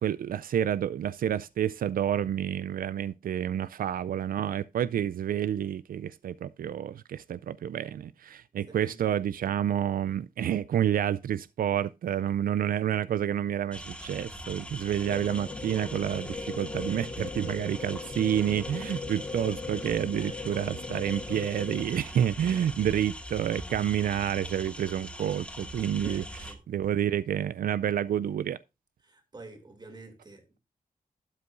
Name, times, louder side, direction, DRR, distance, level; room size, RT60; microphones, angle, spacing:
voice 1, 0.0-28.6, right 10 dB, 85° right, 0.4 m, -29 dB
voice 2, 8.7-9.0 20.2-20.8 22.5-23.1 26.0-26.6 29.0-30.6, right 2 dB, 30° right, 2.7 m, -49 dB
sound 1, 13.7-26.5, equal, 10° left, 2.0 m, -42 dB
sound 2, 15.0-21.8, left 4 dB, 30° left, 0.7 m, -39 dB
12.5 x 8.3 x 2.5 m
wide cardioid pair, 160°, 14 cm